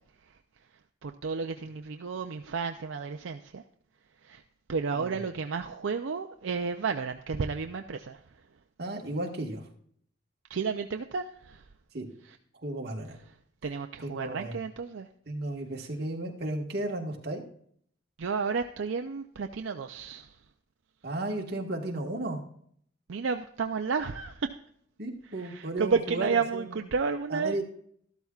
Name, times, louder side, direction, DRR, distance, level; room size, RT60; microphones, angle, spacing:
voice 1, 1.0-3.6 4.2-4.4 4.7-8.2 10.5-11.6 12.2-12.4 13.6-15.1 18.2-20.4 23.1-24.5 25.3-27.6, right 5 dB, 75° right, 6 dB, 0.5 m, -32 dB
voice 2, 8.8-9.6 11.9-12.1 12.6-13.2 14.0-14.6 15.3-17.4 21.0-22.4 25.0-26.6 27.3-27.6, right 2 dB, 55° right, 1 dB, 1.6 m, -34 dB
13.0 x 12.5 x 2.4 m, 0.64 s
head